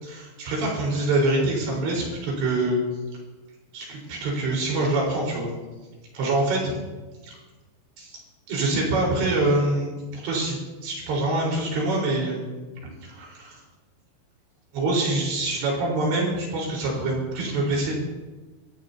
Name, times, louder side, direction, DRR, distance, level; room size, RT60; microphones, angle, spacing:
voice 1, 0.0-2.8 3.7-5.5 6.1-6.6 7.3-7.4 8.0-8.2 8.5-12.4 13.0-13.6 14.7-17.9, right 2 dB, 75° right, -2 dB, 6.9 m, -25 dB
28.5 x 15.0 x 2.9 m, 1.2 s
omnidirectional pair, 5.2 m